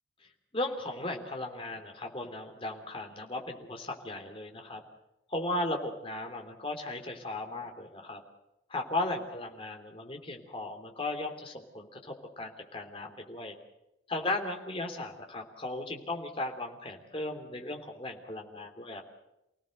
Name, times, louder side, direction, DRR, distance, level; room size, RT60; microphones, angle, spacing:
voice 1, 0.5-4.8 5.3-8.2 8.7-13.5 14.1-19.1, left 2 dB, 25° left, 3 dB, 3.2 m, -36 dB
29.0 x 17.5 x 6.6 m, 0.89 s
head